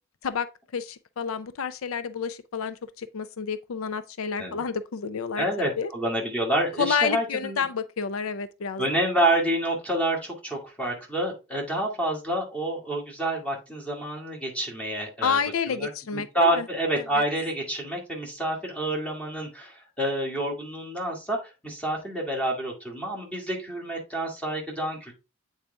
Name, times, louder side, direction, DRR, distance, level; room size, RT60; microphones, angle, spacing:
voice 1, 0.7-5.5 5.8-5.9 6.8-8.8 15.2-16.7 17.0-17.2, left 6 dB, 85° left, 0.5 m, -29 dB
voice 2, 5.4-7.7 8.8-15.4 15.7-25.1, right 1 dB, 5° left, 2.1 m, -28 dB
8.2 x 4.0 x 3.3 m
head